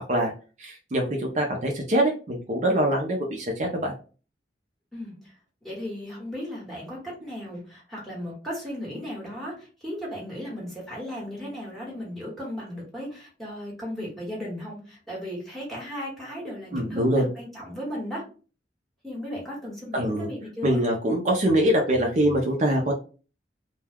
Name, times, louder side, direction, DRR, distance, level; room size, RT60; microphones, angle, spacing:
voice 1, 0.6-3.9 16.7-17.3 19.9-20.3 20.6-22.9, right 1 dB, 45° right, 0 dB, 0.5 m, -24 dB
voice 2, 4.9-5.3 5.6-18.3 19.0-20.8, equal, ahead, -5 dB, 1.2 m, -36 dB
2.3 x 2.2 x 3.3 m, 0.36 s
head